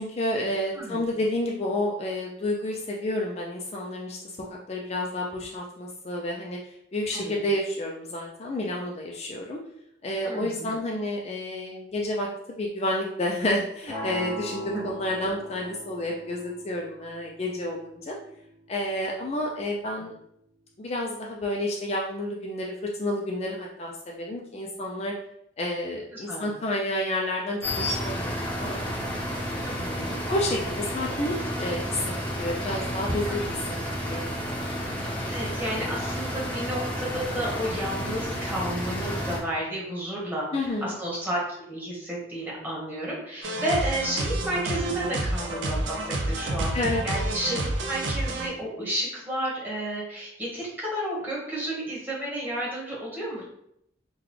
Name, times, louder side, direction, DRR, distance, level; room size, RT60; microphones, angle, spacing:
voice 1, 0.0-9.6 10.0-12.3 12.6-18.2 18.7-20.1 20.8-22.7 23.0-25.1 25.6-28.8 30.3-33.6 34.0-34.6 40.5-40.9 46.7-47.0, left 1 dB, 35° left, -1 dB, 0.4 m, -30 dB
voice 2, 0.7-1.1 7.1-7.4 10.2-10.8 14.7-14.9 26.1-26.5 29.6-30.2 33.2-33.6 35.3-41.4 41.7-47.6 47.8-53.4, right 1 dB, 10° right, -6 dB, 1.2 m, -32 dB
sound 1, 13.9-19.9, equal, 30° right, 1.5 m, -41 dB
sound 2, 27.6-39.4, equal, 10° left, 0.7 m, -31 dB
sound 3, 43.4-48.5, right 2 dB, 75° right, 0.5 m, -29 dB
3.8 x 2.3 x 3.1 m, 0.75 s
head